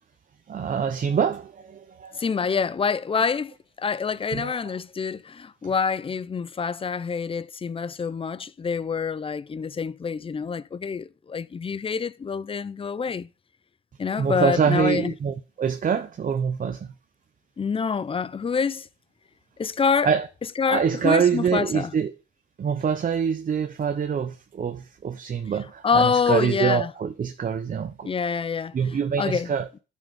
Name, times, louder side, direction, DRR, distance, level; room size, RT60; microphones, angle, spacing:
voice 1, 0.5-2.2 4.3-4.6 14.2-16.9 20.0-20.3 20.7-22.1 22.6-28.1 28.7-29.7, right 7 dB, 45° right, 0.9 m, -25 dB
voice 2, 2.2-13.3 14.0-15.1 17.6-18.9 19.6-20.1 20.6-21.9 25.8-26.9 28.0-28.7 29.2-29.5, left 5 dB, 25° left, 0.6 m, -26 dB
10.5 x 6.4 x 5.4 m
cardioid pair, 90°, 20 cm